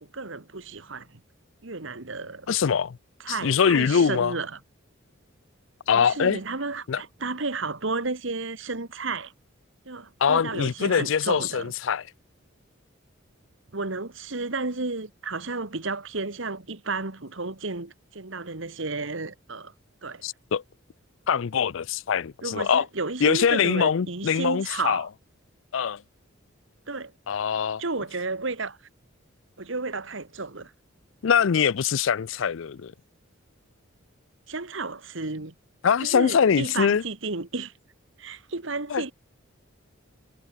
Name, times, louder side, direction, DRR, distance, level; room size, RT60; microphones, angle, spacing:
voice 1, 0.1-1.2 1.6-2.6 3.2-4.6 5.9-9.3 9.8-11.7 13.7-19.7 20.0-20.2 22.4-25.1 26.9-27.1 27.8-28.8 29.6-30.7 34.5-35.5 36.0-37.7 38.2-39.1, right 3 dB, 65° right, 1.7 m, -32 dB
voice 2, 2.5-3.0 3.3-4.3 5.9-6.4 6.9-7.0 10.2-12.0 20.2-20.6 21.3-22.8 23.2-25.0 25.7-26.0 27.3-27.8 31.2-32.9 35.8-37.0 38.9-39.0, left 7 dB, 65° left, 0.4 m, -23 dB
head